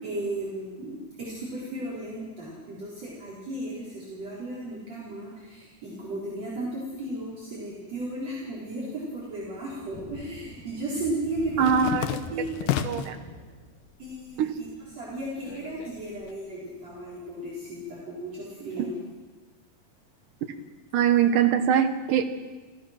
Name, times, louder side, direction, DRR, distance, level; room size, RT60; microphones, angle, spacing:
voice 1, 0.0-11.9 12.3-13.0 14.0-14.7 15.0-18.9, right 1 dB, 50° right, -7 dB, 5.5 m, -35 dB
Thunder, 6.2-6.4 7.0-7.1 7.6-18.1, left 1 dB, 10° left, 2.6 m, -48 dB
sound 1, 9.3-10.1 10.4-13.2 13.7-14.4 14.7-16.3, left 10 dB, 85° left, 2.7 m, -33 dB
voice 2, 11.6-12.1 12.8-13.2 14.4-14.6 20.9-22.3, right 8 dB, 70° right, 7 dB, 2.7 m, -22 dB
28.0 x 16.0 x 6.0 m, 1.3 s
omnidirectional pair, 4.0 m